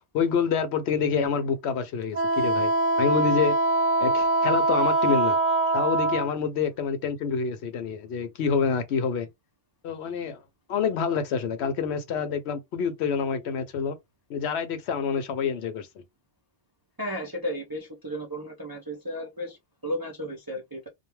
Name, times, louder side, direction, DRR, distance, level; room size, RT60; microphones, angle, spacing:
voice 1, 0.1-2.7 3.0-3.6 4.0-5.4 5.7-9.3 9.8-10.4 10.7-14.0 14.3-16.0, left 6 dB, 70° left, 0.8 m, -27 dB
Wind instrument woodwind instrument, 2.1-6.3, right 2 dB, 50° right, 0.8 m, -23 dB
voice 2, 17.0-20.9, equal, 35° right, 0.3 m, -34 dB
2.3 x 2.2 x 3.0 m
omnidirectional pair, 1.2 m